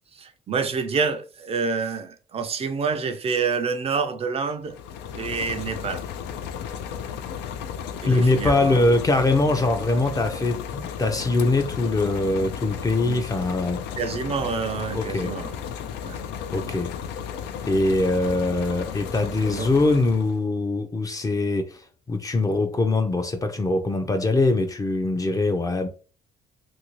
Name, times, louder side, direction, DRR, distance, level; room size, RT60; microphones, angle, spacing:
voice 1, 0.1-4.8 5.1-6.0 8.0-8.8 13.1-13.2 14.0-15.6 16.0-16.2 16.6-16.7 19.5-19.7, right 5 dB, 35° right, 0.4 m, -28 dB
sound 1, 4.6-20.4, left 8 dB, 85° left, 0.4 m, -34 dB
voice 2, 8.0-13.8 14.9-15.3 16.5-17.0 17.7-25.9, left 2 dB, 20° left, 0.5 m, -23 dB
2.7 x 2.6 x 3.0 m
cardioid pair, 110°, 17 cm